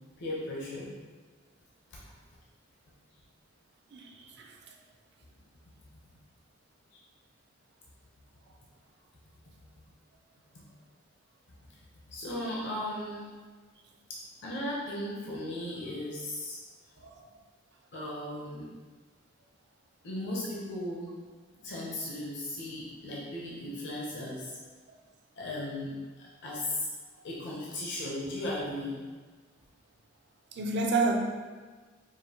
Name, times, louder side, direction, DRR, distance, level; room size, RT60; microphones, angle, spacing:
voice 1, 0.2-0.9 1.9-2.0 10.5-10.6 12.1-13.3 14.1-16.6 17.9-18.7 20.0-21.1 21.6-24.6 25.4-26.9 27.2-29.0, left 1 dB, 60° left, -4 dB, 0.7 m, -36 dB
voice 2, 3.9-4.6 17.0-17.3 24.9-25.0 30.5-31.1, right 3 dB, 60° right, 2 dB, 0.5 m, -30 dB
5.0 x 2.4 x 2.8 m, 1.4 s
head